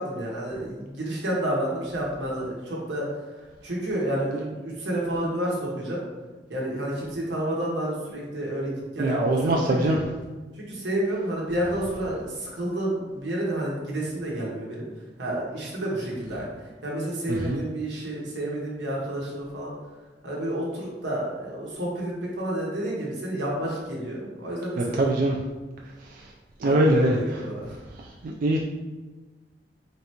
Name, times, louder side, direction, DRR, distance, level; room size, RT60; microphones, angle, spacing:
voice 1, 0.0-3.1 3.3-6.0 6.5-10.0 10.5-14.9 15.2-19.7 20.2-25.0 26.6-27.6, right 1 dB, 85° right, -3 dB, 1.1 m, -30 dB
voice 2, 9.0-10.0 17.4-17.6 24.8-25.3 26.6-27.2 28.2-28.6, right 1 dB, 50° right, -1 dB, 0.3 m, -22 dB
3.9 x 3.3 x 2.8 m, 1.3 s
head